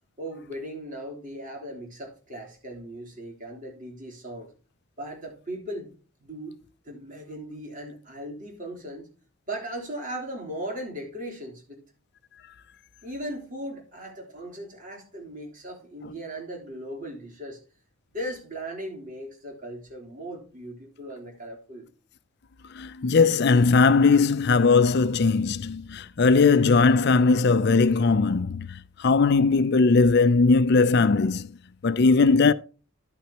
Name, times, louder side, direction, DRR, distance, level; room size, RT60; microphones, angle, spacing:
voice 1, 0.2-4.5 5.0-5.9 6.2-6.6 6.8-9.1 9.5-11.8 13.0-17.6 18.1-21.9, right 1 dB, 40° right, 3.6 m, -38 dB
voice 2, 22.7-31.5 31.8-32.5, left 4 dB, 55° left, 0.5 m, -19 dB
11.5 x 9.2 x 2.9 m
head